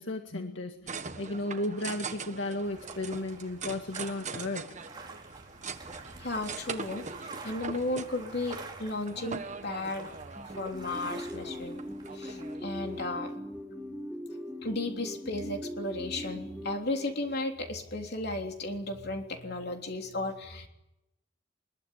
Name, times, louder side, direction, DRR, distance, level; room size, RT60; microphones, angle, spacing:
voice 1, 0.0-4.7, left 2 dB, 80° left, 4 dB, 1.9 m, -34 dB
sound 1, 0.9-13.1, right 5 dB, 40° right, 1.5 m, -42 dB
sound 2, 2.6-12.6, right 3 dB, 25° right, 3.9 m, -48 dB
voice 2, 6.2-10.1 10.6-11.8 12.1-13.3 14.6-20.7, left 2 dB, 60° left, 3 dB, 3.4 m, -34 dB
sound 3, 10.4-17.5, left 1 dB, 5° right, 3.1 m, -40 dB
23.5 x 21.5 x 9.9 m, 0.90 s
head